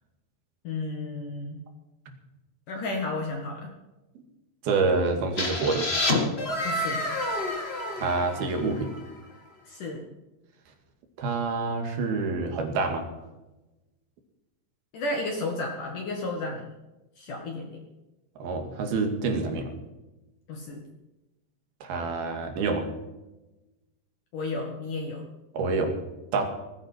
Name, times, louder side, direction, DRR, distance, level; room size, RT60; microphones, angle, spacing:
voice 1, 0.6-1.6 2.7-3.7 6.6-7.0 9.7-10.0 14.9-16.7 17.2-17.8 20.5-20.8 24.3-25.2, left 2 dB, 55° left, 1 dB, 3.0 m, -32 dB
voice 2, 4.6-5.9 8.0-8.9 11.2-13.1 18.4-19.7 21.8-22.9 25.5-25.9 26.3-26.5, right 3 dB, 65° right, 4 dB, 3.9 m, -27 dB
sound 1, 5.4-9.1, left 1 dB, 40° left, 0.9 m, -29 dB
19.5 x 15.5 x 4.6 m, 1.0 s
omnidirectional pair, 4.9 m